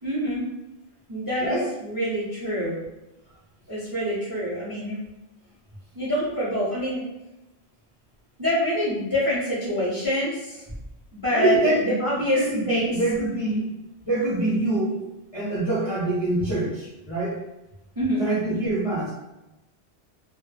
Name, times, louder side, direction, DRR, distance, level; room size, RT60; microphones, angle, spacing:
voice 1, 0.0-0.4 1.1-2.8 3.7-5.0 5.9-7.0 8.4-10.6 11.1-12.4 12.7-13.0 18.0-18.2, equal, 30° right, -7 dB, 0.4 m, -26 dB
voice 2, 11.3-13.7 14.0-15.0 15.3-17.4 18.2-19.1, right 1 dB, 35° left, -8 dB, 0.5 m, -25 dB
2.1 x 2.0 x 3.1 m, 0.96 s
omnidirectional pair, 1.1 m